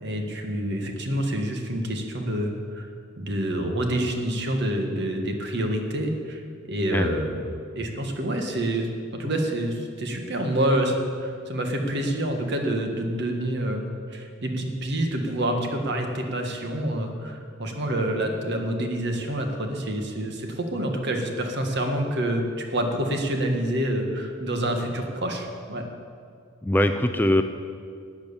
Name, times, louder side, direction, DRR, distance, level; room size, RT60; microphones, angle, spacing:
voice 1, 0.0-2.9 3.2-6.4 6.7-7.4 7.7-22.4 22.7-25.8, right 1 dB, 50° right, 4 dB, 1.6 m, -27 dB
voice 2, 26.6-27.4, left 1 dB, 10° left, 7 dB, 0.3 m, -21 dB
12.0 x 9.0 x 7.1 m, 2.3 s
head